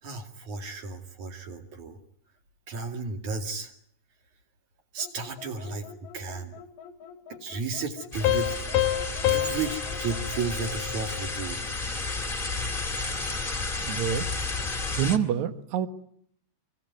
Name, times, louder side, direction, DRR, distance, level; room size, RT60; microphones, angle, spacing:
voice 1, 0.0-2.0 2.7-3.7 4.9-6.5 7.3-8.8 9.3-11.6, right 4 dB, 50° right, 5 dB, 3.1 m, -34 dB
sound 1, 5.0-10.8, left 7 dB, 90° left, 4.2 m, -47 dB
sound 2, 8.1-15.2, left 3 dB, 20° left, 1.6 m, -32 dB
sound 3, 8.2-11.5, left 12 dB, 70° left, 2.7 m, -28 dB
voice 2, 13.8-14.3 15.0-15.9, right 9 dB, 70° right, 10 dB, 1.8 m, -26 dB
26.5 x 21.5 x 9.4 m, 0.68 s
omnidirectional pair, 5.4 m